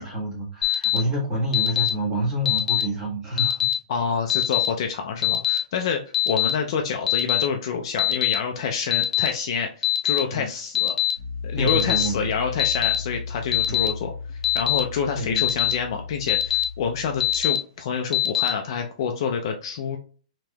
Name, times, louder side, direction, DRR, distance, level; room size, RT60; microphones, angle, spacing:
voice 1, 0.0-3.7 10.3-10.5 11.5-12.3 13.7-13.8 15.1-15.5, right 1 dB, 15° right, -3 dB, 1.2 m, -28 dB
Alarm, 0.6-1.0 1.5-1.9 2.5-2.8 3.4-3.7 4.3-4.7 5.2-5.6 6.1-6.5 7.1-7.4 8.0-8.3 8.9-9.3 9.8-10.2 10.7-11.1 11.7-12.0 12.6-13.0 13.5-13.9 14.4-14.8 15.4-15.7 16.3-16.6 17.2-17.6 18.1-18.5, left 13 dB, 75° left, 0.7 m, -22 dB
voice 2, 3.9-10.9 11.4-20.0, left 6 dB, 35° left, 3 dB, 0.4 m, -27 dB
Piano, 11.2-17.5, left 4 dB, 45° right, 0.9 m, -35 dB
3.2 x 2.9 x 2.2 m, 0.39 s
hypercardioid pair, 165°, 4 cm